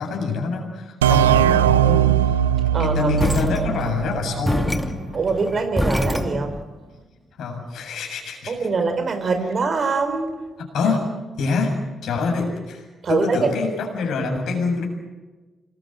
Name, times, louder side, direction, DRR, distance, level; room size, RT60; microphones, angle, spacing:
voice 1, 0.0-2.1 2.8-4.8 7.4-8.5 10.6-11.1 11.4-11.8 12.0-14.8, left 4 dB, 65° left, 2 dB, 7.3 m, -25 dB
sound 1, 1.0-4.6, right 10 dB, 90° right, 0.7 m, -19 dB
voice 2, 2.7-3.1 5.1-6.6 8.5-10.4 10.8-10.9 13.0-13.5, right 4 dB, 50° right, 8 dB, 4.5 m, -23 dB
sound 2, 3.2-6.7, left 1 dB, ahead, 2.6 m, -25 dB
26.5 x 21.5 x 7.9 m, 1.2 s
hypercardioid pair, 40°, 0 cm